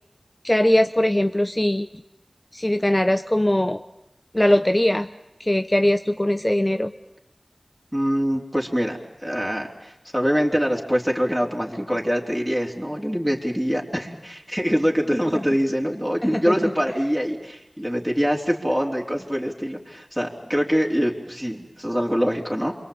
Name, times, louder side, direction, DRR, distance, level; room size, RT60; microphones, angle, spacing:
voice 1, 0.4-1.9 2.5-3.8 4.3-5.1 5.4-6.9 16.2-16.7, left 1 dB, 25° left, 7 dB, 0.9 m, -20 dB
voice 2, 7.9-22.7, equal, 5° right, -1 dB, 3.6 m, -24 dB
28.5 x 22.0 x 8.7 m, 0.90 s
wide cardioid pair, 40°, 0 cm